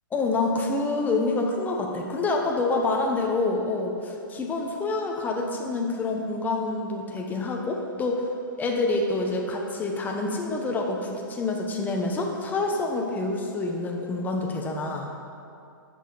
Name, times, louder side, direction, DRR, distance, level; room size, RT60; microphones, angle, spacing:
voice 1, 0.1-8.3 8.6-15.1, left 3 dB, 15° left, 1 dB, 1.0 m, -27 dB
10.0 x 6.6 x 4.0 m, 2.5 s
hypercardioid pair, 130°, 12 cm